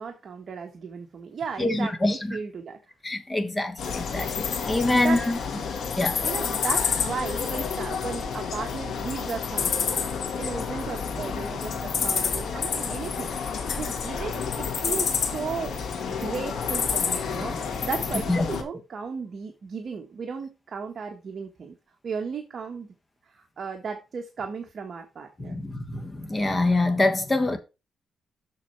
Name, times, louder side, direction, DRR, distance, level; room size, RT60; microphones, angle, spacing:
voice 1, 0.0-2.8 4.9-5.2 6.2-10.1 10.4-13.3 13.8-15.8 16.1-17.5 17.8-21.7 22.0-22.9 23.3-25.6, right 5 dB, 50° right, 1.3 m, -35 dB
voice 2, 1.6-2.4 3.0-5.4 6.0-6.2 18.3-18.4 25.4-27.6, left 2 dB, 20° left, 1.4 m, -25 dB
sound 1, 3.8-18.6, left 6 dB, 80° left, 2.0 m, -29 dB
7.4 x 6.4 x 4.6 m
wide cardioid pair, 135°, 0 cm